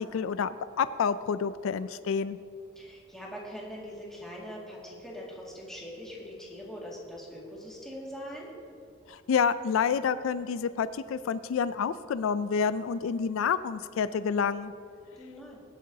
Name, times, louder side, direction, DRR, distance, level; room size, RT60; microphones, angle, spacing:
voice 1, 0.0-2.4 9.1-14.7, left 6 dB, 85° left, 14 dB, 0.3 m, -28 dB
voice 2, 2.8-8.5 15.2-15.6, equal, ahead, -5 dB, 2.0 m, -42 dB
23.0 x 7.8 x 2.8 m, 2.4 s
head